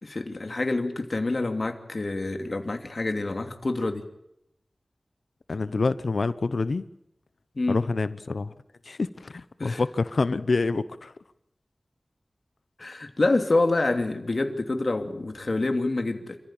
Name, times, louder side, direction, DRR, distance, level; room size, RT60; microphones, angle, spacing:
voice 1, 0.0-4.0 7.6-7.8 9.6-9.8 12.8-16.4, left 2 dB, 55° left, 6 dB, 2.7 m, -27 dB
voice 2, 5.5-6.8 7.7-8.5 8.8-11.1, left 3 dB, 80° left, 14 dB, 0.9 m, -27 dB
27.5 x 15.0 x 9.0 m, 0.83 s
wide cardioid pair, 75°, 0 cm